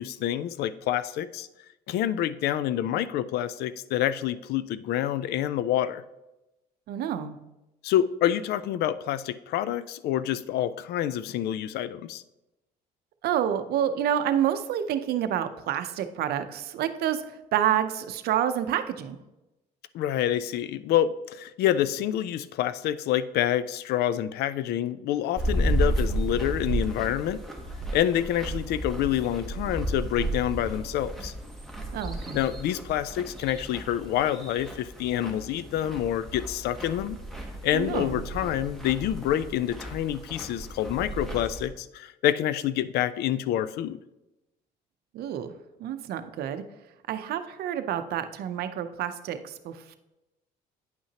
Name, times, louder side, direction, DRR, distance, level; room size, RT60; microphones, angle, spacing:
voice 1, 0.0-1.5 1.9-6.0 7.8-12.2 19.9-27.4 27.9-31.3 32.3-37.2 37.6-44.0, left 11 dB, 75° left, 16 dB, 0.4 m, -27 dB
voice 2, 6.9-7.4 13.2-17.2 17.5-19.2 31.9-32.4 37.7-38.3 45.1-45.5 45.8-46.6 47.1-50.0, right 10 dB, 70° right, 10 dB, 0.6 m, -28 dB
sound 1, 25.4-41.7, right 1 dB, ahead, 1.1 m, -33 dB
9.2 x 5.6 x 2.9 m, 0.96 s
cardioid pair, 110°, 17 cm